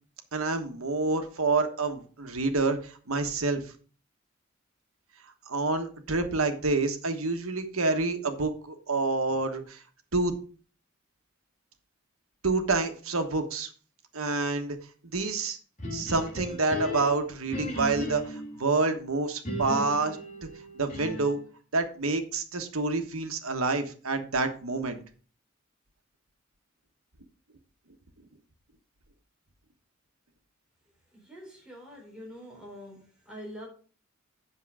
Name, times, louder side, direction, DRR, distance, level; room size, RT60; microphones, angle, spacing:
voice 1, 0.3-3.6 5.5-9.8 10.1-10.3 12.4-13.7 14.1-14.8 15.1-15.6 15.9-20.5 20.8-21.4 21.7-25.0, right 3 dB, 90° right, 1.3 m, -28 dB
sound 1, 15.8-18.6 19.4-21.4, left 1 dB, 35° left, 3.3 m, -36 dB
voice 2, 31.1-33.7, equal, 5° right, 4.0 m, -45 dB
8.4 x 6.8 x 4.8 m
head